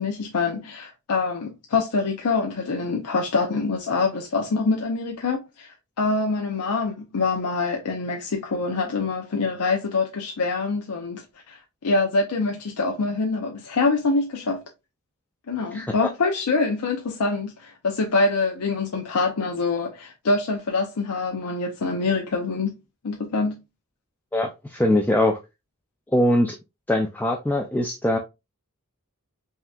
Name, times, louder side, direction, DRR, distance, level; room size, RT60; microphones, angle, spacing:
voice 1, 0.0-14.6 15.5-23.6, left 3 dB, 90° left, 0.6 m, -25 dB
voice 2, 24.3-25.4 26.1-26.6 26.9-28.2, left 1 dB, 10° left, 0.4 m, -22 dB
5.6 x 2.8 x 2.3 m
head